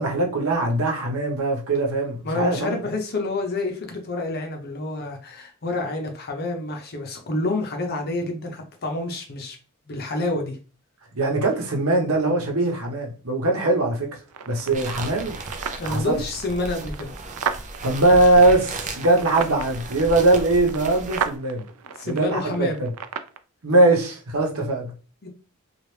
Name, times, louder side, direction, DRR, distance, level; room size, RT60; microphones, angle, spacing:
voice 1, 0.0-2.8 11.1-14.1 14.5-15.4 15.8-16.2 17.8-21.7 22.0-22.9 23.6-24.9, right 2 dB, 70° right, 0.9 m, -21 dB
voice 2, 2.2-9.6 9.9-10.6 15.8-17.1 22.0-22.8 25.2-25.3, left 2 dB, 45° left, 0.8 m, -28 dB
sound 1, 14.3-23.4, right 7 dB, 90° right, 0.4 m, -35 dB
sound 2, 14.7-21.4, right 2 dB, 35° right, 0.5 m, -35 dB
3.0 x 2.4 x 3.2 m
head